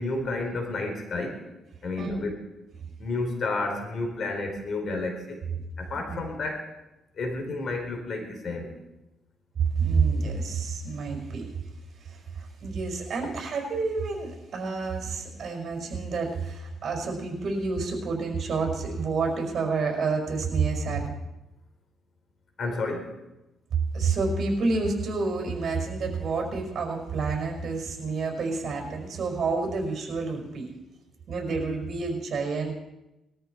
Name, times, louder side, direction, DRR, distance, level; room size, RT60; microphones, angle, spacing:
voice 1, 0.0-1.4 1.8-2.4 3.0-5.4 5.8-6.7 7.2-8.7 22.6-23.1, left 2 dB, 55° left, 4 dB, 4.0 m, -31 dB
voice 2, 9.6-11.5 12.0-21.2 23.9-30.7 31.3-32.7, right 4 dB, 55° right, 1 dB, 5.2 m, -29 dB
20.5 x 13.5 x 4.6 m, 0.96 s
cardioid pair, 90°, 0 cm